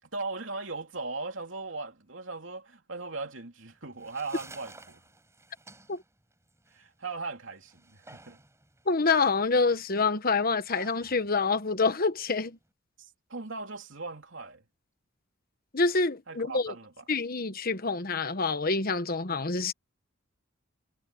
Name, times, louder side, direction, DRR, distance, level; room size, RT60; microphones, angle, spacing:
voice 1, 0.0-5.0 6.7-8.4 13.0-14.6 16.3-17.0, right 3 dB, 70° right, 3.1 m, -38 dB
sound 1, 3.7-12.7, right 2 dB, 15° right, 6.8 m, -54 dB
voice 2, 8.9-12.6 15.7-16.7 17.1-19.7, left 4 dB, 45° left, 1.3 m, -27 dB
head